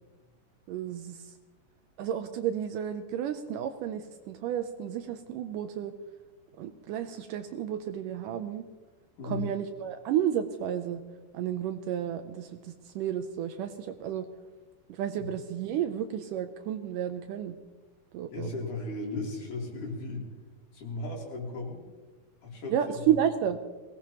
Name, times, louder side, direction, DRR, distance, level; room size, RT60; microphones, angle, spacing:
voice 1, 0.7-1.3 2.0-5.9 6.6-8.6 9.2-11.0 11.3-14.3 14.9-17.6 18.1-18.5 22.7-23.6, right 10 dB, 75° right, 8 dB, 2.1 m, -32 dB
voice 2, 9.2-9.5 15.2-15.3 18.3-20.3 20.7-21.8 22.4-22.8 23.0-23.1, left 2 dB, 60° left, -2 dB, 4.6 m, -36 dB
22.5 x 18.5 x 3.0 m, 1.3 s
omnidirectional pair, 4.2 m